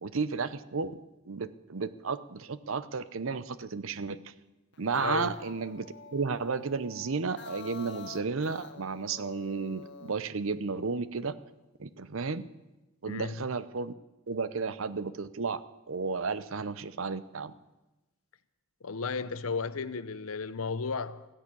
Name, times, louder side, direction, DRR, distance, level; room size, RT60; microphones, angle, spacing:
voice 1, 0.0-1.0 1.3-4.2 4.8-5.9 6.1-11.3 11.8-12.4 13.0-13.9 14.3-15.6 15.9-17.5, right 4 dB, 70° right, 0.7 m, -33 dB
sound 1, 4.7-10.2, left 4 dB, 55° left, 1.4 m, -47 dB
voice 2, 5.0-5.3 13.1-13.4 18.8-21.3, left 5 dB, 85° left, 0.8 m, -34 dB
15.0 x 10.5 x 8.5 m
head